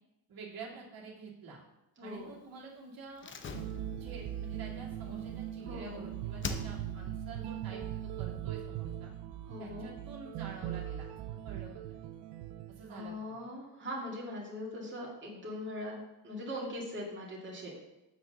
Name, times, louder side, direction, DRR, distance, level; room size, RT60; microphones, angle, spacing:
voice 1, 0.3-1.6 2.0-3.3 4.0-7.8 8.2-9.1 9.6-11.1 11.4-12.0 12.7-13.4, right 4 dB, 60° right, -5 dB, 2.5 m, -48 dB
voice 2, 2.0-2.3 5.6-6.1 9.5-9.9 12.9-17.8, left 1 dB, 30° right, -4 dB, 2.2 m, -41 dB
Slam, 3.2-5.9 6.4-7.2 7.4-7.5, left 5 dB, 30° left, 0.7 m, -43 dB
sound 1, 3.5-13.1, right 11 dB, 80° right, 0.6 m, -40 dB
6.7 x 4.8 x 6.6 m, 0.96 s
cardioid pair, 110°, 39 cm